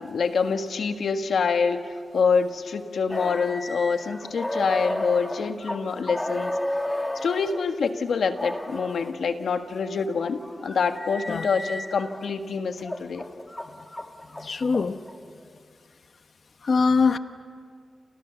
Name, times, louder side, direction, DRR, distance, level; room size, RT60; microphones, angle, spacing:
voice 1, 0.0-6.5 7.2-13.2, left 5 dB, 90° left, 7 dB, 1.6 m, -26 dB
sound 1, 3.1-7.6 8.3-9.1 9.9-12.2 12.8-15.2, left 1 dB, 10° left, 1.3 m, -33 dB
voice 2, 14.4-15.0 16.6-17.2, left 4 dB, 55° left, 9 dB, 0.9 m, -22 dB
29.0 x 28.0 x 7.1 m, 2.1 s
wide cardioid pair, 135°, 0 cm